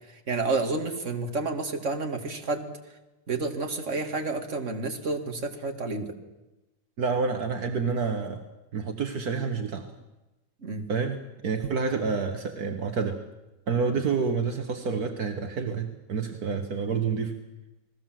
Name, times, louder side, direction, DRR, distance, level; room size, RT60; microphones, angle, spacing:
voice 1, 0.3-2.7 3.3-6.1 10.6-10.8, right 3 dB, 25° right, 5 dB, 2.1 m, -30 dB
voice 2, 7.0-8.4 8.7-9.9 10.9-11.2 11.4-13.2 13.7-17.3, right 5 dB, 50° right, 6 dB, 1.2 m, -28 dB
29.5 x 20.0 x 7.7 m, 1.0 s
omnidirectional pair, 3.7 m